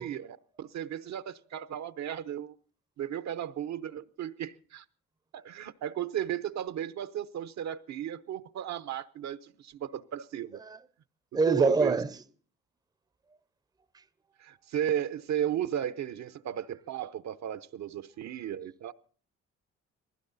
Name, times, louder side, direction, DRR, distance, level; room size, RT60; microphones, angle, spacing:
voice 1, 0.0-2.5 3.0-4.8 5.3-10.6 11.5-12.0 14.4-18.9, right 10 dB, 65° right, 0.8 m, -35 dB
voice 2, 11.3-12.1, right 3 dB, 15° right, 0.6 m, -24 dB
19.5 x 16.0 x 4.0 m
cardioid pair, 90°, 30 cm